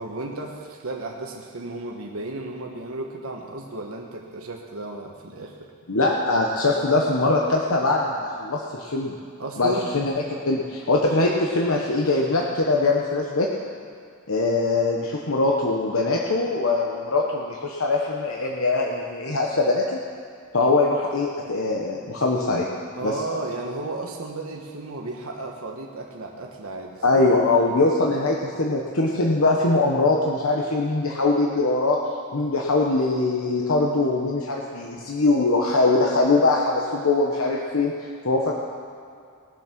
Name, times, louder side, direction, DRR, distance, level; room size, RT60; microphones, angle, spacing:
voice 1, 0.0-5.7 9.4-10.0 23.0-27.2, right 2 dB, 80° right, 0 dB, 1.3 m, -34 dB
voice 2, 5.9-9.1 9.6-13.5 14.3-20.0 20.5-22.7 23.0-23.1 27.0-32.0 32.3-38.5, left 2 dB, 75° left, -1 dB, 1.1 m, -22 dB
19.5 x 7.4 x 6.0 m, 2.3 s
head